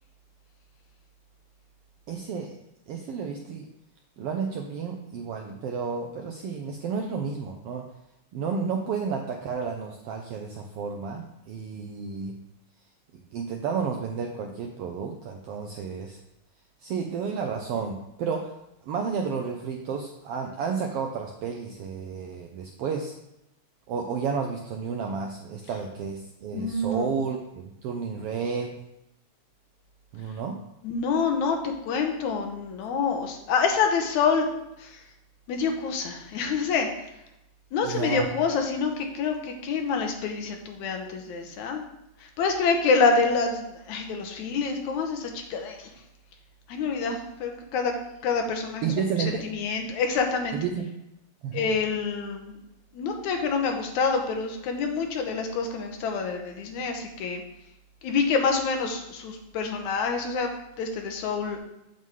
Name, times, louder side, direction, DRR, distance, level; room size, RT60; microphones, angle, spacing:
voice 1, 2.1-2.5 2.9-3.7 4.2-7.8 8.3-12.4 13.1-16.2 16.8-18.5 18.9-23.1 23.9-28.8 30.1-30.6 37.8-38.3 48.8-49.4 50.5-50.9 51.4-51.7, right 6 dB, 80° right, 3 dB, 1.3 m, -31 dB
voice 2, 26.5-27.1 30.8-34.5 34.8-35.0 35.5-36.9 37.7-41.8 42.4-45.9 46.7-47.9 48.2-48.9 49.5-50.6 51.5-52.6 52.9-57.4 58.0-60.5 60.8-61.6, left 5 dB, 80° left, 4 dB, 2.3 m, -27 dB
7.8 x 7.4 x 3.6 m, 0.88 s
omnidirectional pair, 3.4 m